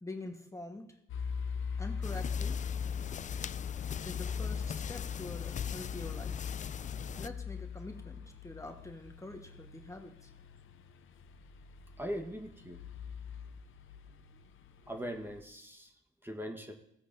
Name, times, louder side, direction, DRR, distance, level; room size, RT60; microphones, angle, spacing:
voice 1, 0.0-0.9 1.8-2.6 4.0-6.4 7.1-10.3, left 2 dB, 15° left, 4 dB, 1.2 m, -45 dB
sound 1, 1.1-15.4, left 6 dB, 75° left, 0.7 m, -41 dB
sound 2, 2.0-7.3, left 7 dB, 40° left, 0.4 m, -41 dB
voice 2, 12.0-12.8 14.9-15.9 16.2-16.7, equal, 10° right, 4 dB, 1.2 m, -40 dB
16.5 x 8.2 x 2.6 m, 0.77 s
supercardioid pair, 60°, 21 cm